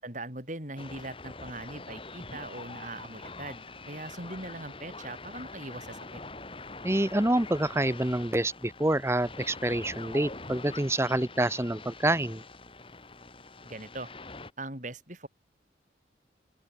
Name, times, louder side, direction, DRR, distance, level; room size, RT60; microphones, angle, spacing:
voice 1, 0.0-6.2 13.6-14.1 14.6-15.3, right 2 dB, 40° right, 7.5 m, -41 dB
sound 1, 0.8-14.5, left 3 dB, 30° left, 2.5 m, -44 dB
voice 2, 6.8-12.4, right 1 dB, 15° right, 1.0 m, -27 dB
open air
head